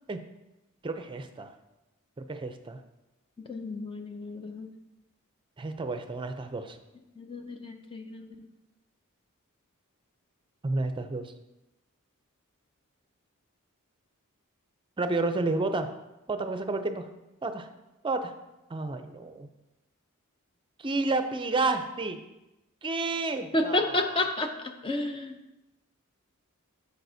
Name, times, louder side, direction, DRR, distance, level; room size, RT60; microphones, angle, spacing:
voice 1, 0.8-1.5 2.2-2.8 5.6-6.8 10.6-11.3 15.0-15.9 16.3-17.1 17.4-17.7 18.0-18.3 18.7-19.5 20.8-22.2 22.8-24.2, right 3 dB, 25° right, 8 dB, 0.5 m, -30 dB
voice 2, 3.5-4.7 7.2-8.3 23.5-25.4, left 1 dB, 25° left, 5 dB, 0.5 m, -31 dB
9.0 x 6.8 x 2.7 m, 0.97 s
head